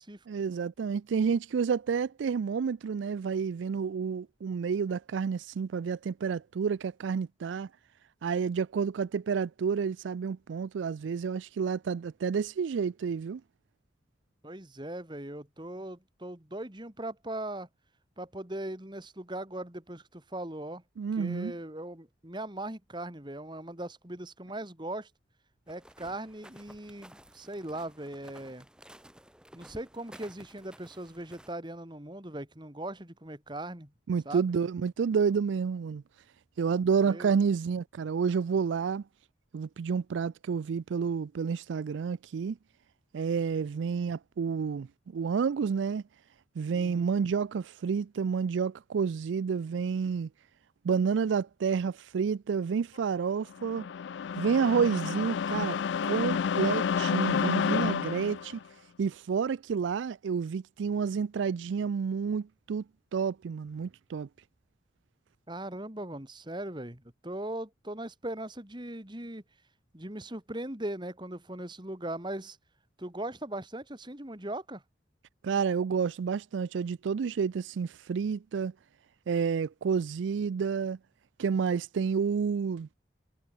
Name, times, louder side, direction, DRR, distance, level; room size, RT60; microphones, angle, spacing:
voice 1, 0.3-7.7 8.2-13.4 21.0-21.5 34.1-36.0 36.6-39.0 39.5-42.6 43.1-44.9 45.1-46.0 46.6-50.3 50.8-53.9 54.4-55.8 56.1-58.6 59.0-62.8 63.1-64.3 75.4-78.7 79.3-81.0 81.4-82.9, right 6 dB, 90° right, 0.4 m, -29 dB
voice 2, 14.4-17.7 18.2-20.8 21.2-25.1 25.7-28.7 29.5-33.9 34.2-34.5 37.0-37.3 46.7-47.2 65.5-69.4 69.9-72.6 73.0-74.8, right 1 dB, 25° right, 2.6 m, -39 dB
sound 1, 25.7-31.5, equal, 5° right, 3.8 m, -53 dB
sound 2, 53.5-58.6, left 7 dB, 75° left, 0.4 m, -30 dB
head